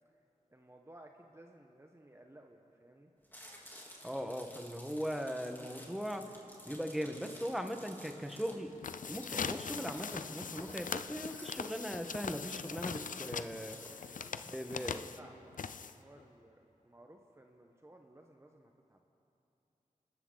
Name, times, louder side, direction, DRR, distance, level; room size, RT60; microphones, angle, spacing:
voice 1, 0.5-3.1 13.9-19.0, right 1 dB, 20° right, 2 dB, 1.1 m, -58 dB
Chewing mastication, 3.2-13.9, equal, 15° left, 3.2 m, -54 dB
voice 2, 4.0-6.3 6.6-8.7 9.1-13.8 14.5-15.0, equal, ahead, 5 dB, 1.4 m, -39 dB
sound 1, 8.7-16.2, left 6 dB, 70° left, 0.5 m, -41 dB
27.0 x 13.0 x 4.0 m, 2.8 s
cardioid pair, 45°, 14 cm